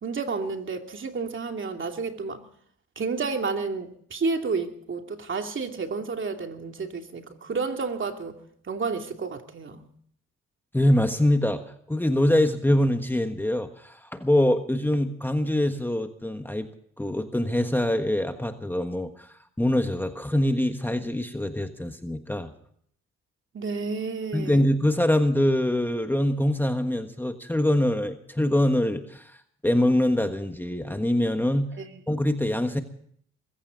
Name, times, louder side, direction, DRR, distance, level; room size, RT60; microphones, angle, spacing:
voice 1, 0.0-2.4 3.0-8.4 8.7-9.9 23.5-24.6 31.8-32.0, right 4 dB, 40° right, 2.7 m, -31 dB
voice 2, 10.7-11.6 11.9-16.7 17.0-22.5 24.3-29.4 29.6-31.7 32.1-32.8, left 1 dB, 5° left, 1.4 m, -24 dB
22.0 x 15.5 x 3.9 m
cardioid pair, 90°, 30 cm